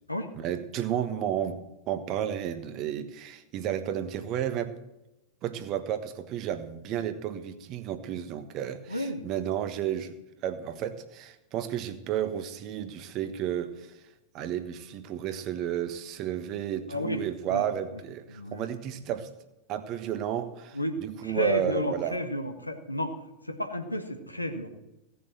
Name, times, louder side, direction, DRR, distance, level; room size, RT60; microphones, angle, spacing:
voice 1, 0.3-4.8 5.4-10.2 10.4-14.0 14.3-19.3 19.7-22.2, right 10 dB, 40° right, 10 dB, 1.3 m, -32 dB
voice 2, 8.9-9.2 16.9-17.6 18.3-18.7 20.7-21.0 21.2-23.1 23.4-24.7, left 1 dB, 85° left, 5 dB, 1.6 m, -32 dB
17.0 x 7.0 x 7.7 m, 0.95 s
figure-of-eight pair, 90°, 0 cm